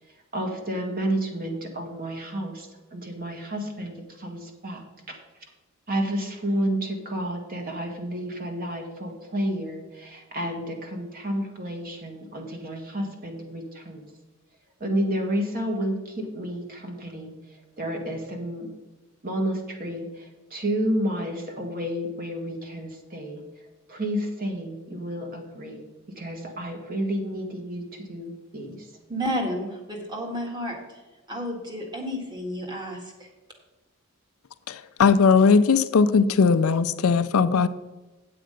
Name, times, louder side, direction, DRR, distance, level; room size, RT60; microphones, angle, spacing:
voice 1, 0.3-4.8 5.9-14.1 14.8-17.3 17.8-18.7 19.2-23.4 23.9-25.8 26.2-28.9, equal, 40° right, 1.7 m, -30 dB
voice 2, 29.1-31.0 31.3-33.3, equal, 20° right, 1.9 m, -31 dB
voice 3, 34.7-37.7, left 5 dB, 65° left, 0.5 m, -19 dB
8.8 x 7.6 x 5.1 m
head